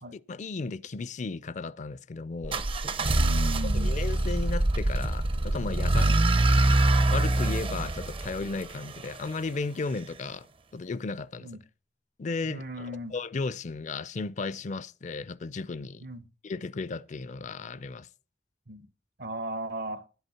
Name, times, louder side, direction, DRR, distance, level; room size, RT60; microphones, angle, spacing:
voice 1, 0.1-2.6 3.7-6.1 7.1-10.5 10.7-11.5 12.2-12.9 13.1-16.1 16.4-18.1, left 3 dB, 45° left, 0.4 m, -34 dB
sound 1, 2.4-9.3, right 2 dB, 30° right, 0.6 m, -25 dB
voice 2, 3.0-4.0 5.9-6.2 11.4-11.6 12.5-13.2 16.0-16.3 18.7-18.9 19.2-20.1, right 1 dB, 60° right, 0.8 m, -37 dB
10.5 x 8.0 x 5.7 m
head